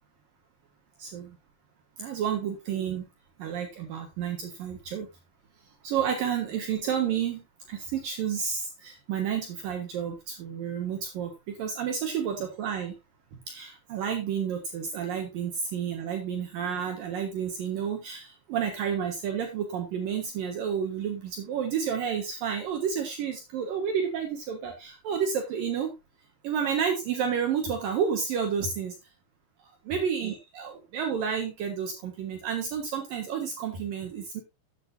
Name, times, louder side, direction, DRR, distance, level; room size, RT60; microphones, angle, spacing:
voice 1, 1.0-1.4 2.0-3.1 3.4-5.1 5.8-7.4 7.7-12.9 13.5-25.9 26.4-28.9 29.9-34.4, right 7 dB, 65° right, 3 dB, 3.0 m, -30 dB
13.0 x 8.4 x 2.7 m, 0.23 s
omnidirectional pair, 4.7 m